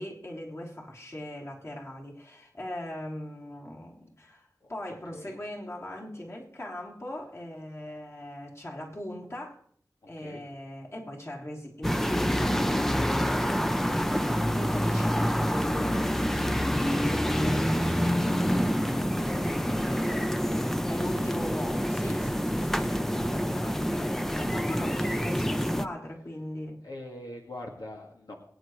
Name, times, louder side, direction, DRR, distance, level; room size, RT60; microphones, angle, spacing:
voice 1, 0.0-9.6 10.1-26.8, left 1 dB, 40° left, -2 dB, 3.4 m, -40 dB
voice 2, 10.0-10.4 20.0-20.2 22.2-22.3 22.6-22.8 23.3-23.5 26.8-28.3, left 1 dB, 80° left, 0 dB, 2.1 m, -44 dB
sound 1, 11.8-25.9, equal, 5° left, 0.7 m, -27 dB
22.5 x 9.5 x 3.2 m, 0.62 s
wide cardioid pair, 70°, 7 cm